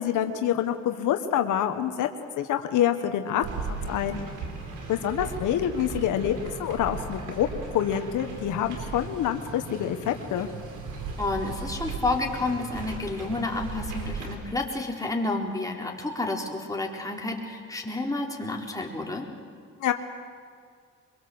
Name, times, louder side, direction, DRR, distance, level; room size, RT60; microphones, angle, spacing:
voice 1, 0.0-2.1 2.4-4.2 4.9-10.5 19.8-19.9, left 10 dB, 80° left, 7 dB, 1.4 m, -27 dB
sound 1, 3.4-14.3, right 4 dB, 90° right, 4.3 m, -37 dB
voice 2, 11.2-19.3, left 2 dB, 10° left, -1 dB, 4.2 m, -30 dB
24.5 x 22.0 x 8.0 m, 2.1 s
cardioid pair, 90°, 30 cm